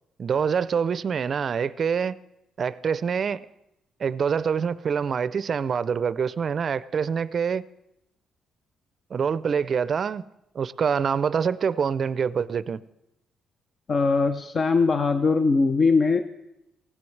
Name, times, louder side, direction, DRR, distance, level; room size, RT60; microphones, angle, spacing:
voice 1, 0.2-2.2 2.6-3.5 4.0-7.7 9.1-10.2 10.5-12.8, right 6 dB, 50° right, 17 dB, 0.4 m, -25 dB
voice 2, 13.9-16.2, left 4 dB, 45° left, 9 dB, 0.6 m, -21 dB
19.5 x 15.5 x 3.3 m, 0.88 s
cardioid pair, 90°, 0 cm